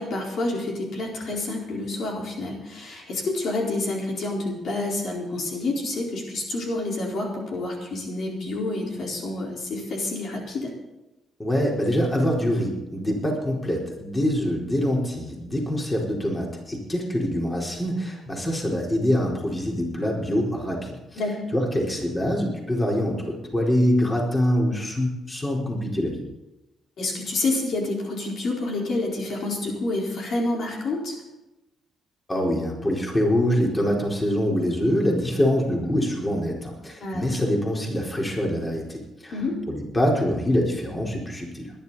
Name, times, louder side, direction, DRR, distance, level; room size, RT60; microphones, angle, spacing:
voice 1, 0.0-10.7 21.2-21.3 27.0-31.2 37.0-37.3 39.3-39.5, left 2 dB, 65° left, -1 dB, 4.5 m, -28 dB
voice 2, 11.4-21.2 21.5-26.2 32.3-39.3 39.7-41.7, equal, 20° left, -1 dB, 4.3 m, -24 dB
20.5 x 11.0 x 4.2 m, 1.0 s
cardioid pair, 90°, 0 cm